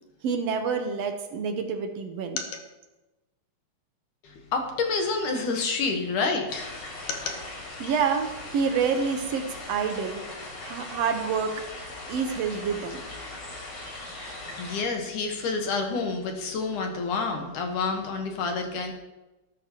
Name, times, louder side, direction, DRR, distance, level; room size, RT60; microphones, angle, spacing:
voice 1, 0.2-2.4 7.8-10.2 10.6-11.6 12.1-13.0, right 6 dB, 70° right, 5 dB, 1.5 m, -28 dB
voice 2, 4.2-7.4 14.6-18.9, left 4 dB, 65° left, 3 dB, 2.6 m, -29 dB
sound 1, 6.5-14.8, left 2 dB, 45° left, 4.1 m, -40 dB
19.0 x 11.0 x 3.0 m, 1.1 s
omnidirectional pair, 4.3 m